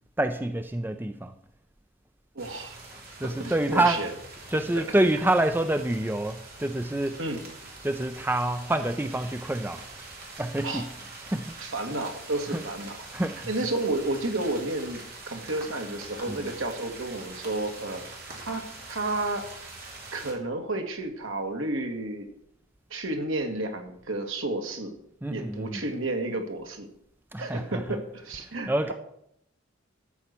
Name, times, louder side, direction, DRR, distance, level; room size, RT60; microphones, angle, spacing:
voice 1, 0.2-1.3 2.9-4.0 4.5-7.3 7.8-9.8 10.4-11.5 12.5-12.7 13.1-13.6 16.3-16.5 25.2-25.9 27.3-28.0 28.3-28.9, right 1 dB, 10° right, 8 dB, 0.5 m, -27 dB
sound 1, 2.4-20.3, right 3 dB, 45° right, 3.4 m, -44 dB
voice 2, 2.4-2.8 3.2-4.1 4.7-4.8 7.2-7.4 10.6-10.8 11.6-13.0 13.5-15.0 15.3-18.0 18.5-18.6 18.9-19.5 20.1-22.3 22.9-24.9 25.3-26.9 27.4-28.9, right 2 dB, 70° right, 4 dB, 1.9 m, -31 dB
13.0 x 5.7 x 8.2 m, 0.73 s
head